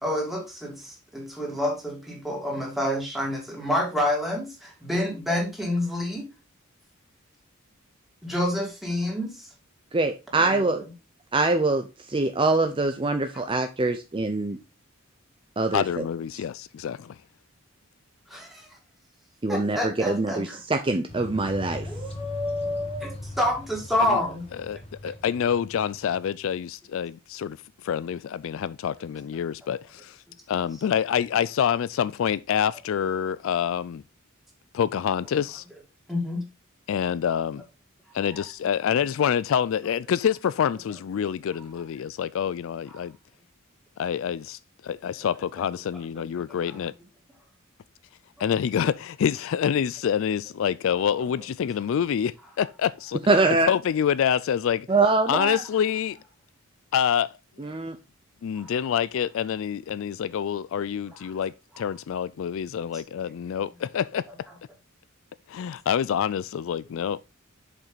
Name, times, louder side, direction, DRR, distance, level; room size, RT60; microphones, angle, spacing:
voice 1, 0.0-6.3 8.2-9.5 10.4-10.8 18.3-18.7 19.5-20.6 21.8-24.5 25.0-25.1 36.1-36.4 46.7-46.8 58.6-58.7, left 1 dB, ahead, 2.8 m, -28 dB
voice 2, 9.9-10.8 11.3-14.6 15.6-15.8 19.4-21.9 53.3-53.7 54.9-55.6 57.6-58.0, right 3 dB, 25° right, 0.6 m, -24 dB
voice 3, 15.7-17.2 24.0-24.2 24.6-27.6 27.8-30.2 30.5-34.0 34.7-35.6 36.9-37.6 38.1-43.2 44.0-46.9 48.4-53.2 53.5-54.9 55.3-56.2 56.9-57.3 57.6-57.8 58.4-64.3 65.5-67.2, left 8 dB, 65° left, 0.3 m, -27 dB
sound 1, 21.1-26.4, left 1 dB, 30° left, 1.4 m, -39 dB
7.3 x 5.4 x 3.9 m
head